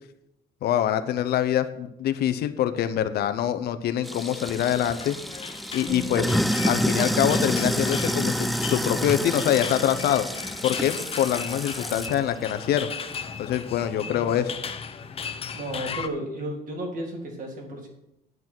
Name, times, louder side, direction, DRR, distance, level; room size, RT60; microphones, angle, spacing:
voice 1, 0.6-5.2 5.7-6.3 6.7-10.3 10.6-12.9 13.4-14.5, left 10 dB, 70° left, 10 dB, 0.9 m, -25 dB
Sink (filling or washing), 4.0-12.2, equal, ahead, 0.5 m, -28 dB
sound 1, 4.5-16.1, left 6 dB, 35° left, 0.8 m, -37 dB
Musical instrument, 5.9-13.8 14.0-14.2, left 1 dB, 15° right, 1.9 m, -44 dB
voice 2, 14.1-14.4 15.5-17.9, right 1 dB, 50° right, 0 dB, 3.5 m, -33 dB
9.3 x 8.2 x 6.1 m, 0.84 s
cardioid pair, 110°, 17 cm